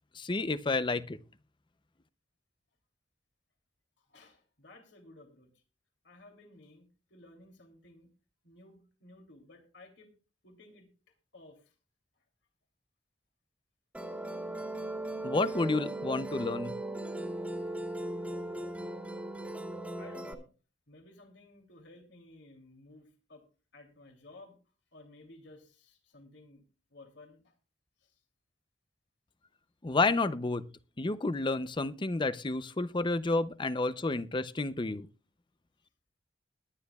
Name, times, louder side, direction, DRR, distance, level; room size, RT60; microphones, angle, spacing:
voice 1, 0.1-1.2 15.2-16.7 29.8-30.7 31.0-35.1, left 3 dB, 25° left, 0.6 m, -30 dB
voice 2, 4.0-5.5 6.0-8.1 8.4-10.1 10.4-10.9 11.3-11.7 20.0-20.5 20.9-23.4 23.7-24.6 24.9-26.6 26.9-27.5 28.0-28.2, left 2 dB, 65° left, 3.0 m, -55 dB
Musical instrument, 13.9-20.3, right 1 dB, 10° right, 1.9 m, -38 dB
21.0 x 10.0 x 2.4 m
head